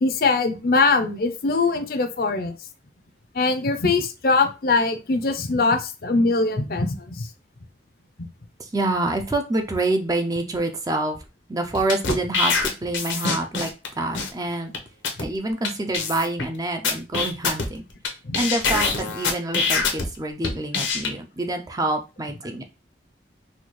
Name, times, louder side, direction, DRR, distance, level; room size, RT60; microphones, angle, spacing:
voice 1, 0.0-2.5 3.3-7.3 18.2-18.4, left 3 dB, 50° left, 8 dB, 0.5 m, -22 dB
voice 2, 8.6-11.2 11.5-14.7 15.2-17.8 18.3-22.6, right 2 dB, 20° right, 5 dB, 0.4 m, -26 dB
sound 1, 11.7-13.9 14.1-14.3 14.7-14.8 15.0-15.3 15.6-15.7 15.9-16.5 16.8-18.1 18.3-20.1 20.4-21.1, left 4 dB, 85° left, 0.8 m, -24 dB
4.2 x 2.3 x 3.0 m, 0.30 s
head